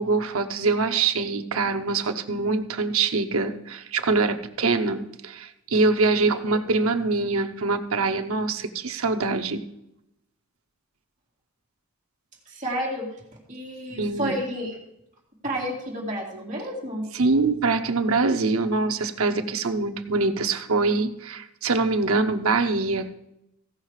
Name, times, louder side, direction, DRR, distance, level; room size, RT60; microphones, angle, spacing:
voice 1, 0.0-9.6 14.0-14.3 17.1-23.1, right 3 dB, 75° right, 7 dB, 0.8 m, -24 dB
voice 2, 12.5-13.1 13.5-14.8 15.4-17.1, equal, 35° right, -2 dB, 2.2 m, -31 dB
15.5 x 5.7 x 4.8 m, 0.83 s
head